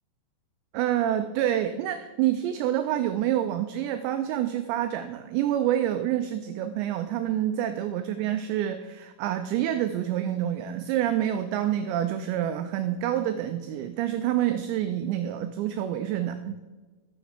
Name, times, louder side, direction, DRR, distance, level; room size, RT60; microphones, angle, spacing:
voice 1, 0.7-16.6, right 11 dB, 90° right, 9 dB, 2.5 m, -27 dB
12.5 x 7.0 x 5.0 m, 1.3 s
omnidirectional pair, 5.6 m